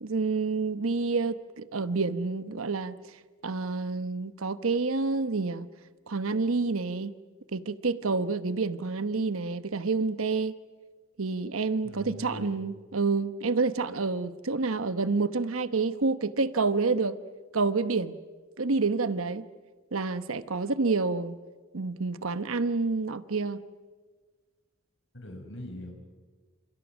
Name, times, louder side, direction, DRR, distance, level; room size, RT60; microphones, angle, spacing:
voice 1, 0.0-2.9 3.4-5.7 6.1-7.1 7.5-10.5 11.2-17.2 17.5-18.2 18.6-19.5 19.9-21.4 21.7-23.6, right 4 dB, 80° right, 1.0 m, -28 dB
voice 2, 11.8-12.7 25.1-25.9, left 1 dB, 60° left, 6.3 m, -41 dB
30.0 x 27.5 x 6.3 m
head